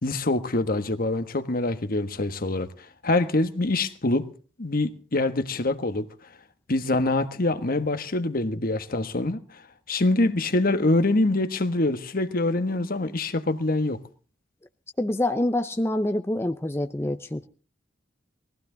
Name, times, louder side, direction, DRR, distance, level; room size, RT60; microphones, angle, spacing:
voice 1, 0.0-2.7 3.0-4.3 4.6-6.0 6.7-9.6 9.9-14.0, left 2 dB, 55° left, 1.4 m, -25 dB
voice 2, 15.0-17.5, left 1 dB, 15° left, 0.7 m, -26 dB
20.5 x 15.5 x 3.9 m
head